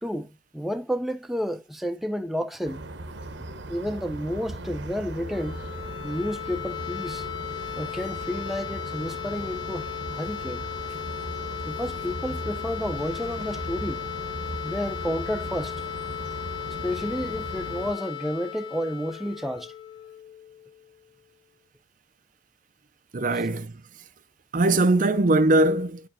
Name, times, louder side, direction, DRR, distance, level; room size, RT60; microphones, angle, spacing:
voice 1, 0.0-2.8 3.7-5.7 6.0-7.3 7.8-10.6 11.7-14.0 14.6-15.8 16.8-19.7, equal, ahead, 0.7 m, -31 dB
sound 1, 2.6-17.9, right 1 dB, 75° right, 1.0 m, -38 dB
sound 2, 5.1-20.9, left 11 dB, 70° left, 1.6 m, -36 dB
voice 2, 23.1-23.8 24.5-26.0, right 2 dB, 45° right, 0.6 m, -21 dB
10.0 x 4.7 x 2.7 m
head